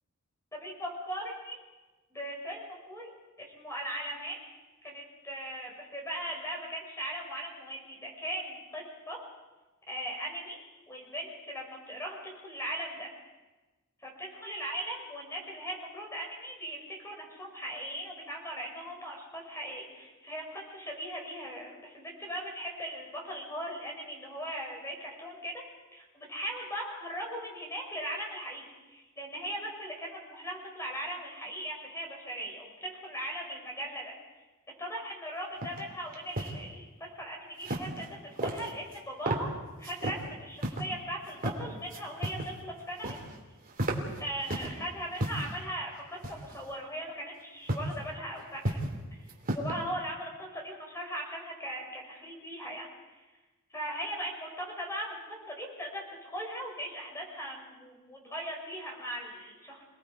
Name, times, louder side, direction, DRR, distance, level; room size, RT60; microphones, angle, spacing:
voice 1, 0.6-1.6 2.1-3.1 3.4-4.4 4.8-9.2 9.9-10.6 10.9-12.2 12.4-13.1 14.0-25.6 25.9-34.1 34.8-39.5 39.8-43.2 44.2-48.8 49.1-53.2 53.7-59.8, equal, 15° left, 0 dB, 5.4 m, -39 dB
sound 1, 35.6-35.8 36.1-36.6 37.6-38.1 38.4-39.0 39.3-39.5 39.8-40.2 40.6-40.8 41.3-41.6 41.9-42.5 42.8-43.4 43.7-44.7 45.2-45.6 46.2-46.7 47.7-47.9 48.4-49.0 49.3-49.8, right 1 dB, 40° right, 3.0 m, -33 dB
28.0 x 19.5 x 4.8 m, 1.2 s
head